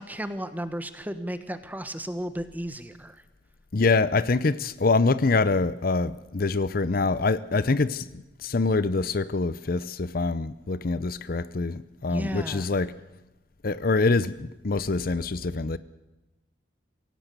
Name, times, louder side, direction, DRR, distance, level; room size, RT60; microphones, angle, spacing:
voice 1, 0.0-3.2 12.1-12.7, equal, 10° right, 1.3 m, -34 dB
voice 2, 3.7-12.9 13.6-15.8, left 3 dB, 50° left, 0.6 m, -25 dB
24.5 x 17.0 x 6.8 m
head